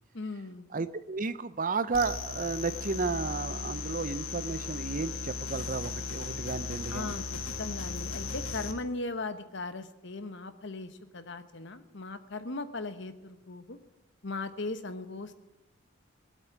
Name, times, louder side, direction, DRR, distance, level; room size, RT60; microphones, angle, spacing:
voice 1, 0.1-0.7 6.9-13.8 14.2-15.3, left 3 dB, 60° left, 10 dB, 1.1 m, -38 dB
voice 2, 0.7-7.2, right 4 dB, 40° right, 13 dB, 0.6 m, -33 dB
sound 1, 1.9-8.7, left 4 dB, 85° left, 1.6 m, -37 dB
19.0 x 8.6 x 8.3 m, 1.0 s
head